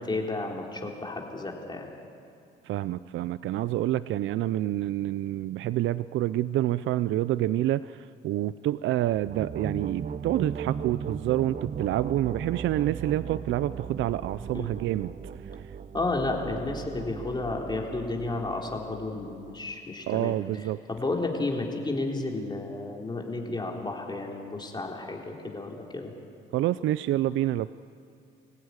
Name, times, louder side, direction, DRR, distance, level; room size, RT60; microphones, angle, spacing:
voice 1, 0.0-1.9 14.5-14.7 15.9-26.1, left 2 dB, 20° left, 0 dB, 3.7 m, -32 dB
voice 2, 2.6-15.1 20.1-20.8 26.5-27.7, right 13 dB, 75° right, 16 dB, 0.5 m, -28 dB
sound 1, 9.1-19.7, right 7 dB, 40° right, 0.8 m, -38 dB
25.0 x 16.0 x 9.7 m, 2.4 s
cardioid pair, 90°, 20 cm